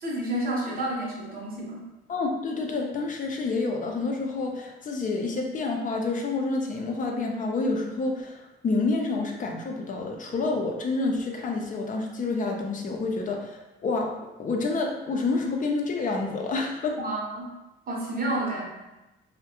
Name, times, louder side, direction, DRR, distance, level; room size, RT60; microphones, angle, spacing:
voice 1, 0.0-1.8 17.0-17.5 17.9-18.6, right 1 dB, 45° right, -3 dB, 0.8 m, -30 dB
voice 2, 2.1-14.1 14.4-16.9, left 3 dB, 40° left, 1 dB, 0.4 m, -28 dB
2.2 x 2.1 x 2.8 m, 1.0 s
cardioid pair, 90°, 20 cm